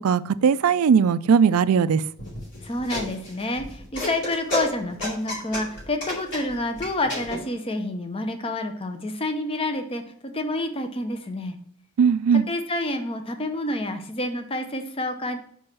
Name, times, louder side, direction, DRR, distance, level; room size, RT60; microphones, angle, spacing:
voice 1, 0.0-2.0 12.0-12.5, right 6 dB, 80° right, 0.4 m, -19 dB
sound 1, 2.2-7.4, left 1 dB, 55° left, 3.2 m, -31 dB
voice 2, 2.6-10.0 10.3-11.6 12.5-15.4, left 1 dB, 25° left, 0.7 m, -28 dB
5.2 x 4.7 x 6.0 m
head